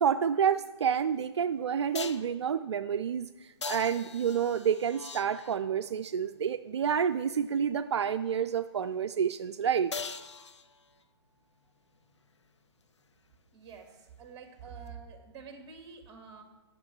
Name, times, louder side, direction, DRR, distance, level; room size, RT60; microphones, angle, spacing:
voice 1, 0.0-3.3 3.7-9.9, right 7 dB, 75° right, 9 dB, 0.4 m, -29 dB
sound 1, 0.9-1.0 1.9-2.4 3.6-5.8 9.9-11.0 14.9-15.0, left 4 dB, 85° left, 0.6 m, -41 dB
voice 2, 13.5-16.4, right 6 dB, 30° right, 4 dB, 1.8 m, -47 dB
9.6 x 6.7 x 6.1 m, 1.1 s
hypercardioid pair, 130°, 14 cm